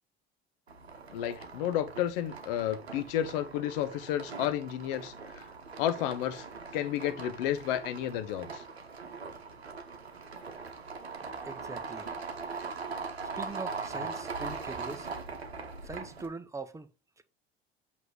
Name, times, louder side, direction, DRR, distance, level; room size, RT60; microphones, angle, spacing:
sound 1, 0.7-16.3, right 4 dB, 85° right, 0.9 m, -41 dB
voice 1, 1.1-5.4 5.8-6.5 6.7-8.6, left 11 dB, 60° left, 0.9 m, -31 dB
voice 2, 11.4-12.1 12.5-12.8 13.4-15.1 15.8-17.2, right 3 dB, 10° right, 0.8 m, -42 dB
7.8 x 2.9 x 5.0 m
figure-of-eight pair, 65°, 31 cm